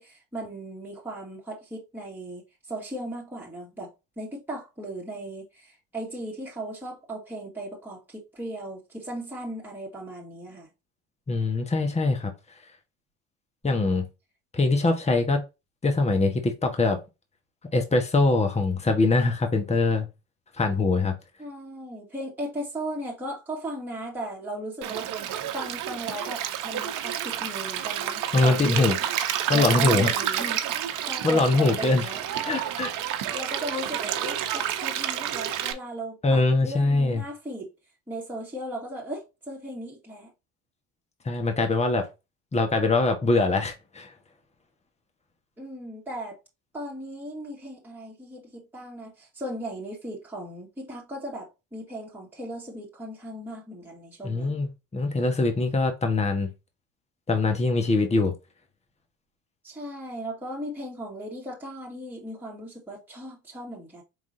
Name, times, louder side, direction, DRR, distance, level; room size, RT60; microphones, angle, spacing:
voice 1, 0.0-10.7 21.4-25.1 25.5-28.9 29.5-30.6 31.1-32.2 33.3-37.7 38.1-40.3 45.6-46.4 46.7-54.6 59.6-64.0, right 1 dB, 5° right, 2.1 m, -37 dB
voice 2, 11.3-12.3 13.6-14.1 14.5-15.4 15.8-17.0 17.7-20.1 20.6-21.1 28.3-29.0 29.5-30.1 31.2-32.0 32.4-32.9 36.2-37.2 41.2-42.1 42.5-44.1 54.2-54.7 54.9-56.5 57.3-58.3, left 3 dB, 20° left, 1.3 m, -23 dB
Stream, 24.8-35.7, right 10 dB, 65° right, 1.0 m, -29 dB
5.0 x 3.5 x 2.7 m
supercardioid pair, 80°, 33 cm